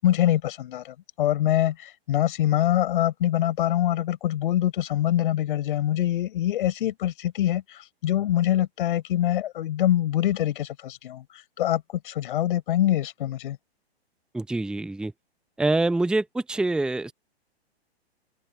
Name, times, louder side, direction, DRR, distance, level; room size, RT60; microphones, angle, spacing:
voice 1, 0.0-13.6, left 12 dB, 55° left, 5.5 m, -24 dB
voice 2, 14.3-15.1 15.6-17.1, right 2 dB, 5° right, 0.9 m, -25 dB
figure-of-eight pair, 115°, 32 cm